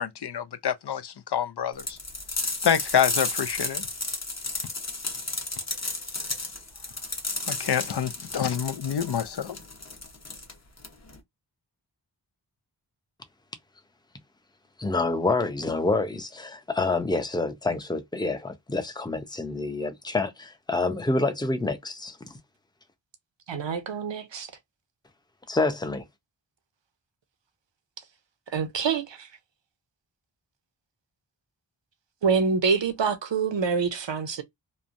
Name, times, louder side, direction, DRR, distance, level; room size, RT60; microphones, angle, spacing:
voice 1, 0.0-2.0 2.6-3.8 7.5-9.6, left 8 dB, 60° left, 0.6 m, -27 dB
sound 1, 1.8-11.2, left 3 dB, 35° left, 0.9 m, -33 dB
voice 2, 14.8-22.4 25.5-26.1, left 3 dB, 10° left, 0.6 m, -27 dB
voice 3, 23.5-24.5 28.5-29.3 32.2-34.4, right 5 dB, 70° right, 0.7 m, -26 dB
3.1 x 2.1 x 2.5 m
wide cardioid pair, 40°, 46 cm